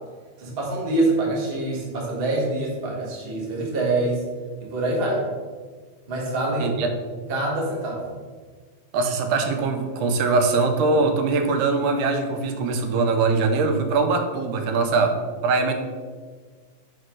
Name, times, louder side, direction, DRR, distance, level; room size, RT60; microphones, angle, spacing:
voice 1, 0.4-4.2 4.6-5.2 6.1-6.7 7.3-8.1, right 2 dB, 35° right, -3 dB, 1.0 m, -25 dB
voice 2, 6.6-6.9 8.9-15.2 15.4-15.7, right 4 dB, 85° right, 5 dB, 2.3 m, -22 dB
4.9 x 4.7 x 6.2 m, 1.5 s
omnidirectional pair, 3.5 m